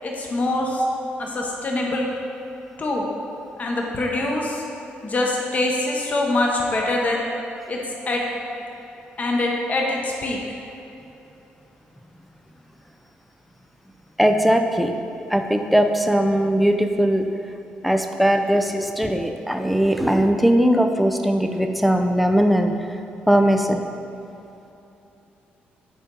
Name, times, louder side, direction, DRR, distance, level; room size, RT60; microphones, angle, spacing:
voice 1, 0.0-0.8 1.2-2.1 2.8-3.0 3.6-4.6 5.0-7.2 7.7-7.8 8.1-8.2 9.2-10.6, left 2 dB, 40° left, -1 dB, 1.1 m, -24 dB
voice 2, 14.2-14.9 15.3-17.3 17.8-22.7 23.3-23.8, equal, ahead, 4 dB, 0.6 m, -19 dB
10.5 x 4.3 x 3.9 m, 2.9 s
cardioid pair, 80°, 4 cm